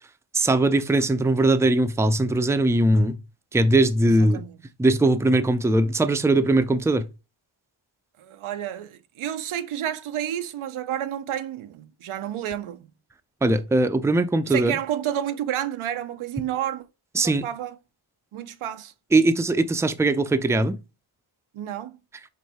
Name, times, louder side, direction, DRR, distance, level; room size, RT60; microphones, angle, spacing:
voice 1, 0.3-3.2 3.5-4.4 4.8-7.1 13.4-14.8 17.1-17.5 19.1-20.8, right 2 dB, 5° right, 0.4 m, -20 dB
voice 2, 4.0-4.6 8.2-12.9 14.5-16.9 17.2-17.8 18.3-18.9 21.5-22.0, right 11 dB, 85° right, 0.6 m, -30 dB
4.6 x 2.6 x 4.2 m
cardioid pair, 60°, 47 cm